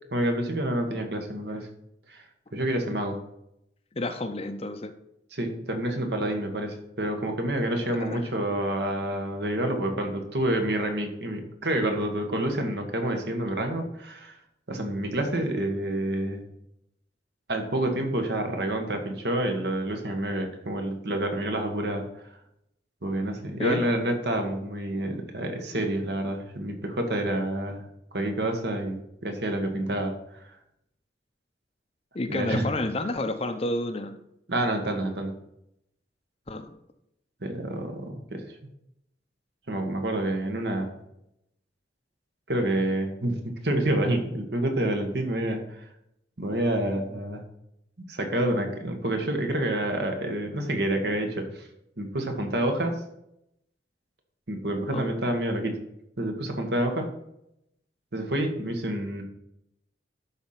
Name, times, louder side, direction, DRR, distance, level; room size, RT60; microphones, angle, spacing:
voice 1, 0.1-1.7 2.1-2.2 2.5-3.2 5.3-14.3 14.7-16.4 17.5-22.3 23.0-27.8 28.1-30.5 32.3-32.7 34.5-35.3 37.4-38.6 39.7-40.9 42.5-45.9 46.4-47.4 48.1-51.7 52.0-53.0 54.5-55.8 56.2-57.1 58.1-59.2, right 1 dB, 60° right, 4 dB, 1.6 m, -28 dB
voice 2, 3.9-4.9 7.9-8.2 23.6-23.9 32.1-34.1 36.5-36.8 54.9-55.1, left 1 dB, 30° left, 8 dB, 0.6 m, -30 dB
11.5 x 4.3 x 5.8 m, 0.80 s
head